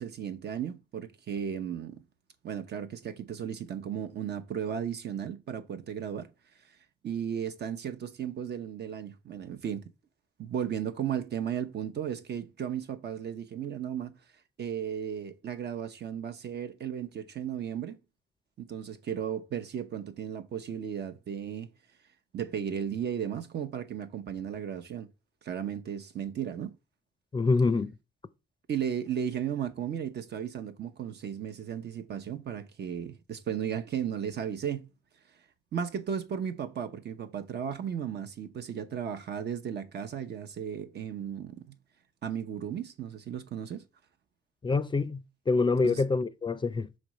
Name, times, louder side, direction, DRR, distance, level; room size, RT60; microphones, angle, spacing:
voice 1, 0.0-2.0 2.4-6.3 7.0-9.8 10.4-14.1 14.6-18.0 18.6-21.7 22.3-25.1 25.4-26.7 28.7-34.9 35.7-41.8 42.2-43.8 45.8-46.0, right 8 dB, 60° right, 0.8 m, -35 dB
voice 2, 27.3-27.9 44.6-46.9, left 3 dB, 25° left, 0.4 m, -26 dB
6.2 x 5.2 x 3.1 m
cardioid pair, 95°, 19 cm